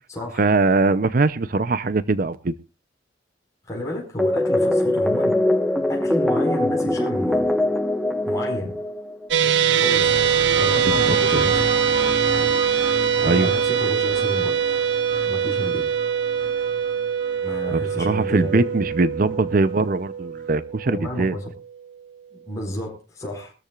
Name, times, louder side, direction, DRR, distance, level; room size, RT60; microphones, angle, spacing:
voice 1, 0.4-2.5 10.8-11.5 13.2-13.5 17.7-21.4, right 3 dB, 50° right, 0.6 m, -21 dB
voice 2, 3.7-5.4 5.9-7.5 8.2-8.7 9.8-10.2 10.6-11.6 13.2-14.6 15.3-15.8 17.4-18.6 20.8-21.4 22.5-23.5, left 1 dB, 20° left, 4.9 m, -31 dB
sound 1, 4.2-9.3, left 1 dB, ahead, 1.1 m, -22 dB
sound 2, 9.3-21.6, right 8 dB, 80° right, 0.8 m, -23 dB
sound 3, 9.4-18.7 19.8-19.9, equal, 25° right, 6.5 m, -31 dB
23.0 x 13.5 x 2.4 m
head